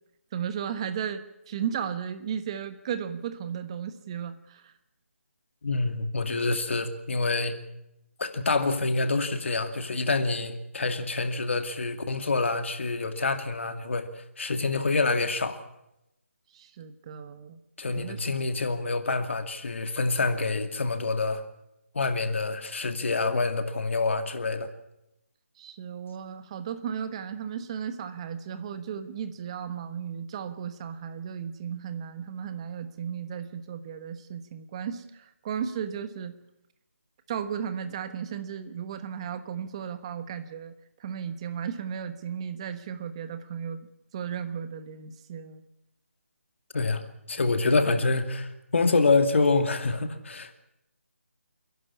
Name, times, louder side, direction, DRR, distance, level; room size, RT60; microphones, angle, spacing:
voice 1, 0.3-4.7 16.5-17.6 17.9-18.2 25.6-36.4 37.3-40.7 41.0-45.6, right 8 dB, 25° right, 11 dB, 1.2 m, -35 dB
voice 2, 5.6-7.5 8.2-15.6 17.8-21.4 21.9-24.7 46.7-47.0 47.3-50.5, left 3 dB, 60° left, 7 dB, 2.4 m, -26 dB
30.0 x 11.0 x 8.5 m, 0.88 s
figure-of-eight pair, 160°, 8 cm